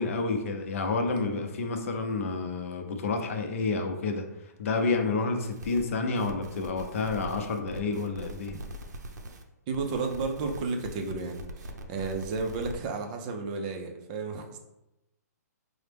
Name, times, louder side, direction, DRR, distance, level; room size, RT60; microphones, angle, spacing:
voice 1, 0.0-4.3 4.6-8.6, left 3 dB, 50° left, 4 dB, 0.6 m, -29 dB
sound 1, 5.4-5.8 6.2-9.4 9.7-12.8, right 1 dB, 80° right, 0.7 m, -42 dB
voice 2, 9.7-14.6, right 4 dB, 25° right, 4 dB, 0.5 m, -33 dB
5.5 x 2.1 x 3.3 m, 0.94 s
hypercardioid pair, 160°, 9 cm